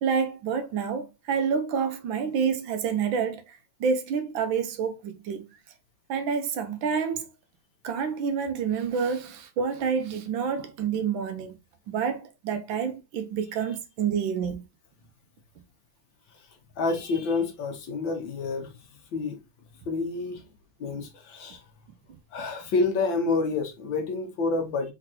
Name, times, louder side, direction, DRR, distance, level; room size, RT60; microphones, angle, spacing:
voice 1, 0.0-5.5 6.1-7.3 7.8-11.6 11.9-14.6 20.9-21.0, right 6 dB, 80° right, 1.5 m, -28 dB
voice 2, 16.8-18.7 19.1-19.4 19.9-20.4 20.8-21.6 22.3-24.9, left 3 dB, 70° left, 1.9 m, -28 dB
4.5 x 3.9 x 2.9 m
omnidirectional pair, 2.2 m